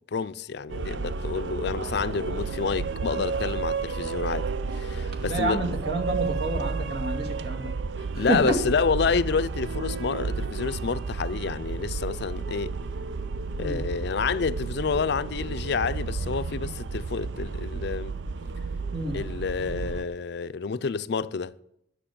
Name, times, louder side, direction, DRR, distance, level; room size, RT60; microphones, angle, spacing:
voice 1, 0.1-4.5 4.7-5.6 8.0-12.8 13.6-18.1 19.1-21.5, left 5 dB, 65° left, 0.5 m, -29 dB
sound 1, 0.7-20.0, right 4 dB, 80° right, 0.5 m, -32 dB
voice 2, 5.3-7.7 8.1-8.6 13.6-13.8 18.9-19.2, right 2 dB, 65° right, 2.2 m, -28 dB
10.0 x 6.4 x 8.5 m
head